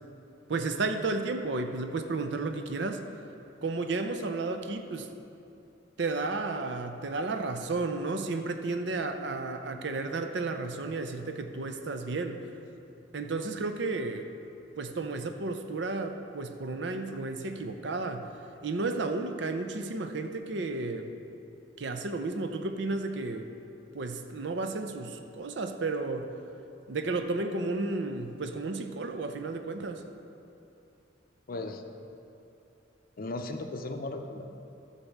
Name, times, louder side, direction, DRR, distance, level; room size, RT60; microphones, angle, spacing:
voice 1, 0.5-3.0 3.6-5.1 6.0-12.4 13.1-14.3 14.8-18.3 18.6-21.1 21.8-23.5 23.9-26.3 26.9-30.0, right 3 dB, 60° right, 7 dB, 0.6 m, -32 dB
voice 2, 31.5-31.8 33.2-34.5, left 2 dB, 50° left, 5 dB, 0.6 m, -36 dB
11.5 x 4.2 x 7.1 m, 2.8 s
head